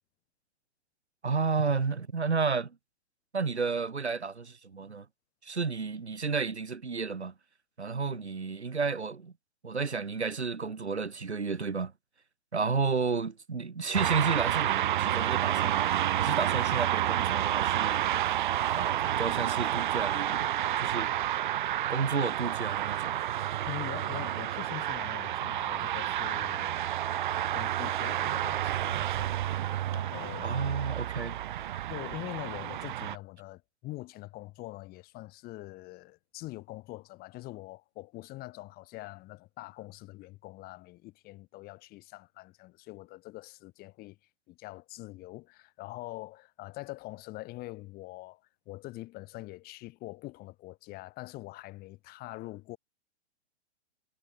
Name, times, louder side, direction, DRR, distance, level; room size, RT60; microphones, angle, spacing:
voice 1, 1.2-2.8 3.3-5.0 5.4-7.3 7.8-9.3 9.6-11.9 12.5-15.9 16.2-18.1 18.6-20.5 20.8-21.1 21.9-23.2 30.4-31.4, right 4 dB, 80° right, 1.4 m, -31 dB
sound 1, 13.9-33.2, right 12 dB, 45° right, 1.1 m, -30 dB
voice 2, 23.7-26.8 27.1-29.3 29.9-30.9 31.9-44.2 44.5-52.8, left 19 dB, 25° left, 7.9 m, -44 dB
figure-of-eight pair, 115°, 33 cm